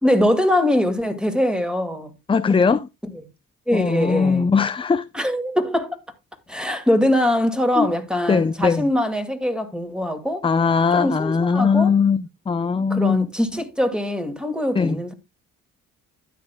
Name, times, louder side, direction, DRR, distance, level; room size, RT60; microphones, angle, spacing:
voice 1, 0.0-2.1 3.7-4.5 5.1-6.0 6.5-10.4 10.9-11.9 12.9-15.1, left 1 dB, 5° right, 2.1 m, -22 dB
voice 2, 2.3-2.9 3.7-5.1 7.8-7.9 8.3-8.9 10.4-13.3 14.7-15.0, left 5 dB, 20° left, 0.5 m, -20 dB
12.5 x 9.6 x 2.2 m
cardioid pair, 90°, 30 cm